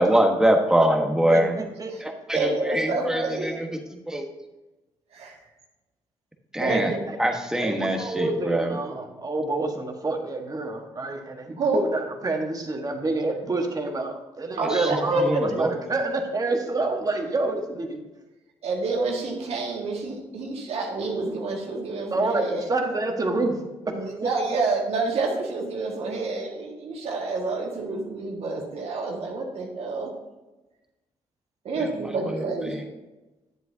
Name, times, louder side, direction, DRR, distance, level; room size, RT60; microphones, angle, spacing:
voice 1, 0.0-1.5 2.0-3.7 4.1-4.3 6.5-6.9 7.2-8.7 14.6-15.7 31.8-31.9 32.3-32.4 32.7-32.8, right 1 dB, 5° right, 3 dB, 1.3 m, -23 dB
voice 2, 1.3-1.9 7.1-7.2 7.6-18.0 22.1-23.6 23.8-24.3, right 2 dB, 35° right, 3 dB, 1.5 m, -28 dB
voice 3, 2.3-3.6 5.1-5.4 6.6-7.0 11.6-11.8 14.6-15.6 18.6-22.7 23.9-30.1 31.6-32.9, right 3 dB, 65° right, -1 dB, 1.8 m, -28 dB
10.0 x 7.7 x 2.8 m, 1.1 s
supercardioid pair, 60°, 11 cm